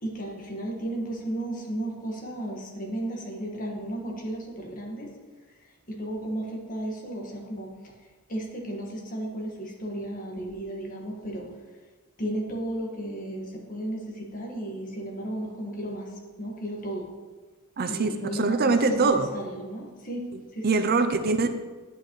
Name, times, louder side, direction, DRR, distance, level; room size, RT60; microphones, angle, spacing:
voice 1, 0.0-5.1 5.9-7.7 8.3-11.5 12.2-16.1 16.4-17.1 17.9-20.2 20.5-21.0, right 1 dB, 40° left, -1 dB, 1.6 m, -34 dB
voice 2, 17.8-19.3 20.6-21.5, right 4 dB, 45° right, 8 dB, 0.5 m, -23 dB
9.9 x 8.0 x 3.1 m, 1.3 s
head